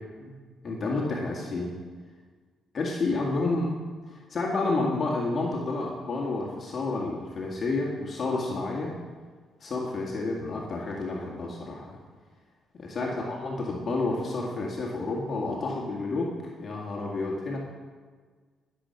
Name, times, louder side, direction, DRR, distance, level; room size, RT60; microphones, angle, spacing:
voice 1, 0.6-1.7 2.7-3.7 4.1-8.9 9.6-12.0 13.0-16.3 16.6-17.6, left 3 dB, 45° left, -3 dB, 2.0 m, -30 dB
12.5 x 7.3 x 5.8 m, 1.5 s
cardioid pair, 90°, 0 cm